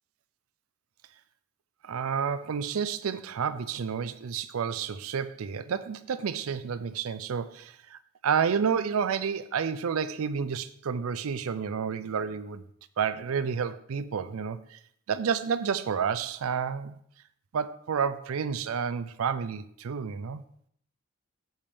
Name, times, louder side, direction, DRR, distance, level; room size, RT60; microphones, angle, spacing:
voice 1, 1.8-12.6 13.0-14.8 15.1-16.9 17.5-20.4, right 6 dB, 85° right, 0.4 m, -30 dB
8.0 x 6.8 x 3.5 m
head